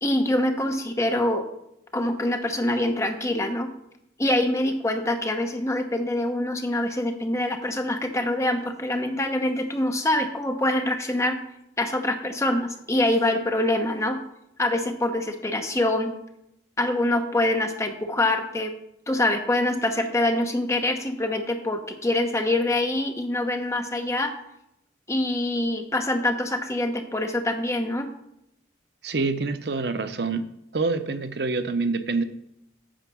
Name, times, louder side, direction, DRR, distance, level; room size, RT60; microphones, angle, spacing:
voice 1, 0.0-1.4 1.9-3.7 4.2-11.4 11.8-14.2 14.6-16.1 16.8-18.7 19.1-24.3 25.1-28.1, left 1 dB, 15° left, 6 dB, 0.9 m, -25 dB
voice 2, 29.0-30.5 30.7-32.2, right 3 dB, 60° right, 10 dB, 0.7 m, -26 dB
8.9 x 6.6 x 6.1 m, 0.81 s
head